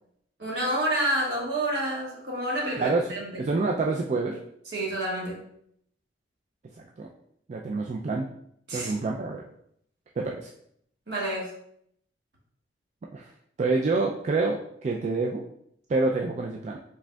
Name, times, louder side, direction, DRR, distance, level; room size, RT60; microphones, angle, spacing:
voice 1, 0.4-3.3 4.7-5.4 8.7-8.9 11.1-11.5, right 1 dB, 60° right, -4 dB, 1.3 m, -28 dB
voice 2, 3.4-4.4 7.0-7.1 7.5-8.3 8.7-9.4 10.2-10.5 13.1-13.3 13.6-15.4 15.9-16.8, right 3 dB, 40° right, 1 dB, 0.3 m, -27 dB
4.9 x 3.4 x 2.2 m, 0.70 s
head